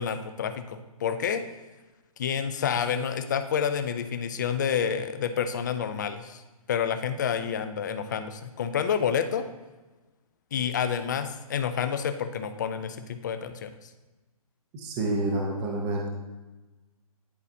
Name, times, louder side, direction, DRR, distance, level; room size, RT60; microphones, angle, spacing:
voice 1, 0.0-1.4 2.2-6.4 6.7-9.5 10.5-13.9, left 7 dB, 30° left, 9 dB, 0.4 m, -29 dB
voice 2, 14.7-16.1, right 2 dB, 15° right, 0 dB, 0.6 m, -28 dB
10.5 x 4.0 x 2.7 m, 1.1 s
hypercardioid pair, 155°, 19 cm